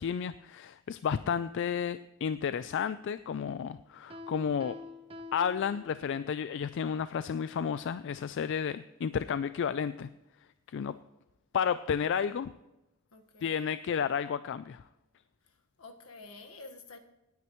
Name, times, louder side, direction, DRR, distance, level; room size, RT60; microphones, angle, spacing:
voice 1, 0.0-4.7 5.3-10.1 10.7-10.9 11.5-12.5 13.4-14.8, left 7 dB, 55° left, 13 dB, 0.3 m, -32 dB
Piano, 4.1-6.4, left 3 dB, 25° right, 0.7 m, -47 dB
voice 2, 13.1-13.6 15.8-17.0, left 3 dB, 75° left, 5 dB, 1.4 m, -49 dB
18.5 x 9.4 x 3.1 m, 0.98 s
head